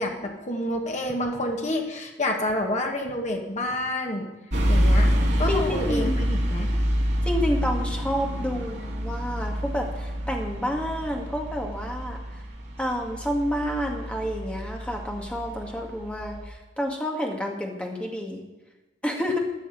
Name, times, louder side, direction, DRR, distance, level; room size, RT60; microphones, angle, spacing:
voice 1, 0.0-4.3 4.7-5.1 5.4-6.7, left 1 dB, 40° left, 2 dB, 1.8 m, -28 dB
sound 1, 4.5-16.4, equal, 65° right, 2.9 m, -27 dB
voice 2, 5.5-6.2 7.2-12.4 12.8-18.4 19.0-19.4, equal, 5° left, 0 dB, 2.0 m, -29 dB
13.5 x 6.5 x 7.8 m, 1.2 s
head